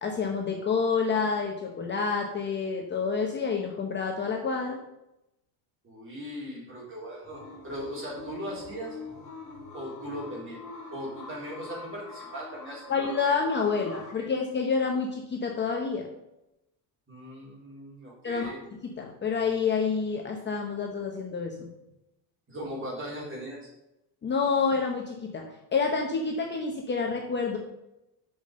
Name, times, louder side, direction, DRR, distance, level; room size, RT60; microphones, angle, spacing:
voice 1, 0.0-4.8 12.9-16.1 18.2-18.5 18.8-21.7 24.2-27.6, left 5 dB, 25° left, 1 dB, 0.9 m, -28 dB
voice 2, 5.8-9.0 9.7-10.6 10.9-13.3 14.2-14.3 17.1-18.6 22.5-23.7, equal, 30° right, -4 dB, 3.9 m, -39 dB
sound 1, 7.2-14.1, left 4 dB, 40° left, 2.8 m, -44 dB
6.9 x 6.0 x 6.7 m, 0.89 s
cardioid pair, 155°, 44 cm